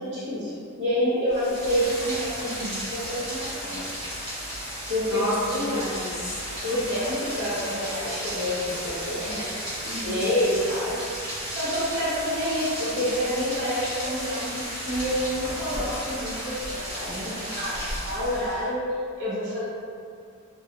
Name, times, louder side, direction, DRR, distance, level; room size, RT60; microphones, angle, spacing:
voice 1, 0.0-2.5 2.9-3.9 4.9-5.8 6.6-11.1 11.5-14.5 14.8-19.6, equal, 55° right, -9 dB, 0.9 m, -28 dB
Rain, 1.3-18.7, equal, 25° right, 1.1 m, -34 dB
voice 2, 2.4-2.8 5.1-6.4 9.8-10.3, equal, 80° left, -6 dB, 0.7 m, -31 dB
2.3 x 2.2 x 2.9 m, 2.3 s
head